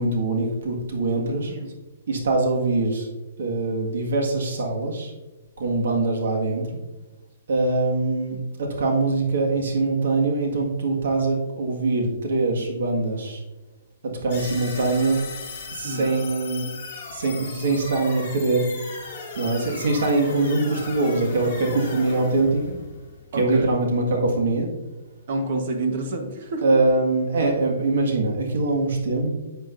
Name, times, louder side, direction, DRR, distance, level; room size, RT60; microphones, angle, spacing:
voice 1, 0.0-1.5 2.1-3.1 3.4-5.1 5.6-6.8 7.5-13.4 14.2-15.2 15.7-16.7 17.1-18.7 19.4-22.7 23.3-24.7 26.6-29.3, right 2 dB, 65° right, 1 dB, 1.8 m, -23 dB
voice 2, 1.3-1.7 15.8-16.1 23.3-23.7 25.3-26.6, right 2 dB, 40° right, 4 dB, 1.2 m, -28 dB
sound 1, 14.3-23.5, left 4 dB, 25° left, 2.4 m, -37 dB
10.0 x 7.9 x 2.6 m, 1.1 s
hypercardioid pair, 180°, 0 cm